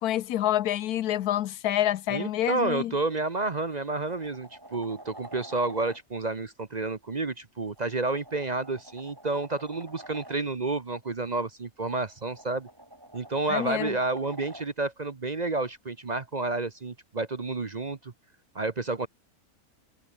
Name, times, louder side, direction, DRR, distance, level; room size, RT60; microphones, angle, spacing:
voice 1, 0.0-2.9 13.5-14.0, left 12 dB, 80° left, 1.2 m, -27 dB
voice 2, 2.1-12.7 13.1-18.1 18.5-19.1, right 3 dB, 30° right, 0.9 m, -30 dB
sound 1, 3.1-3.3 3.7-6.0 7.7-10.4 11.9-14.7 17.0-17.1, right 1 dB, 15° right, 3.6 m, -48 dB
omnidirectional pair, 1.6 m